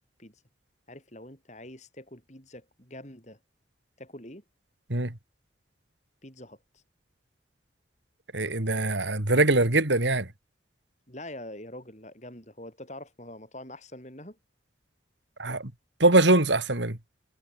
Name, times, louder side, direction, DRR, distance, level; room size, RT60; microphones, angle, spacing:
voice 1, 0.9-3.4 4.0-4.4 6.2-6.8 11.1-14.4, left 1 dB, 40° left, 7.3 m, -44 dB
voice 2, 8.3-10.3 15.4-15.7 16.0-17.0, right 2 dB, 80° right, 3.0 m, -22 dB
head